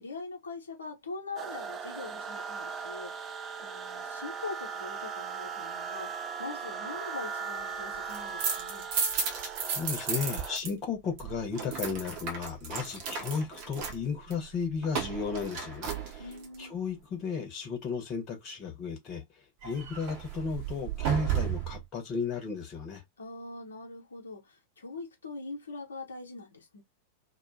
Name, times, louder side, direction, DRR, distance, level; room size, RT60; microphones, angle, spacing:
voice 1, 0.0-3.2 3.6-8.9 16.2-16.8 23.2-26.8, left 3 dB, 70° left, 0.9 m, -42 dB
sound 1, 1.4-10.6, right 6 dB, 25° right, 0.3 m, -39 dB
sound 2, 7.9-10.7 11.0-16.6 19.6-21.8, right 7 dB, 45° right, 0.7 m, -34 dB
voice 2, 9.6-16.3 16.6-19.2 19.6-23.0, left 5 dB, 35° left, 1.0 m, -34 dB
2.5 x 2.2 x 2.6 m
figure-of-eight pair, 90°, 0 cm